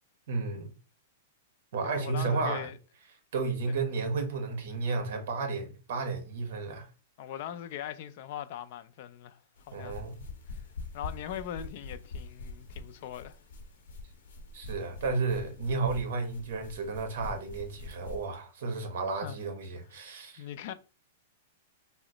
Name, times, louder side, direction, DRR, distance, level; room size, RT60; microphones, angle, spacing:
voice 1, 0.3-0.7 1.7-2.7 3.3-6.9 9.7-10.2 14.5-20.5, right 4 dB, 55° right, 0.9 m, -32 dB
voice 2, 1.8-2.8 7.2-9.4 9.7-10.0 10.9-13.4 19.2-19.4 20.4-20.7, left 10 dB, 40° left, 0.3 m, -40 dB
sound 1, 9.6-18.3, left 3 dB, 80° left, 0.7 m, -44 dB
2.9 x 2.0 x 3.7 m
supercardioid pair, 170°, 0 cm